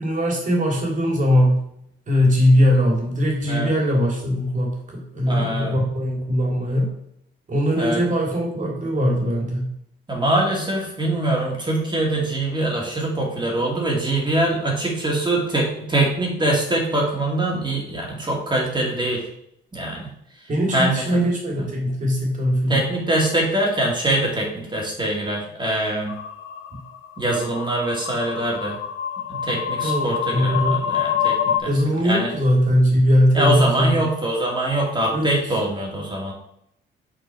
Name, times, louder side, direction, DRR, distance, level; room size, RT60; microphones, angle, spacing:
voice 1, 0.0-1.6 2.1-6.9 7.5-9.7 20.5-22.8 29.8-30.8 31.7-34.1 35.1-35.3, equal, 40° right, -1 dB, 2.5 m, -20 dB
voice 2, 5.3-5.7 7.7-8.0 10.1-19.2 19.7-20.1 20.7-21.0 21.6-21.7 22.7-26.1 27.2-28.8 29.3-31.7 32.0-32.3 33.3-36.3, right 1 dB, 25° right, -2 dB, 2.1 m, -23 dB
sound 1, 26.1-31.6, left 9 dB, 90° left, 0.5 m, -26 dB
6.0 x 4.4 x 4.5 m, 0.73 s
cardioid pair, 90°, 20 cm